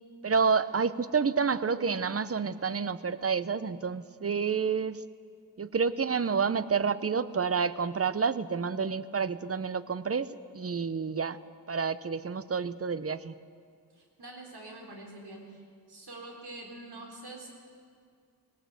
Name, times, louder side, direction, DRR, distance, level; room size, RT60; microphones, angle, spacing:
voice 1, 0.2-5.0 5.6-10.3 10.5-11.4 11.7-13.3, right 5 dB, 35° right, 15 dB, 0.8 m, -29 dB
voice 2, 13.9-17.5, right 2 dB, 75° right, 1 dB, 4.1 m, -45 dB
19.0 x 18.0 x 8.2 m, 2.3 s
cardioid pair, 65°, 39 cm